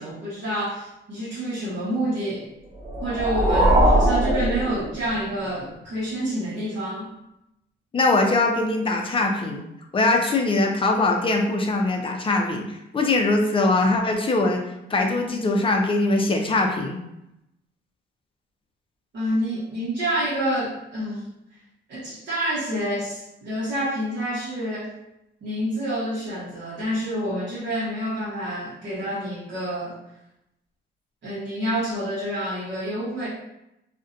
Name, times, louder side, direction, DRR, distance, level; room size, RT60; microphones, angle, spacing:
voice 1, 0.0-2.5 3.0-7.1 19.1-21.3 21.9-24.9 25.4-30.0 31.2-33.3, right 1 dB, 60° right, -9 dB, 0.8 m, -28 dB
sound 1, 2.8-5.4, right 1 dB, 40° right, 0.8 m, -20 dB
voice 2, 7.9-9.6 9.9-14.6 14.9-17.0, left 2 dB, 25° left, 2 dB, 0.4 m, -22 dB
2.5 x 2.1 x 2.5 m, 0.85 s
cardioid pair, 90°, 20 cm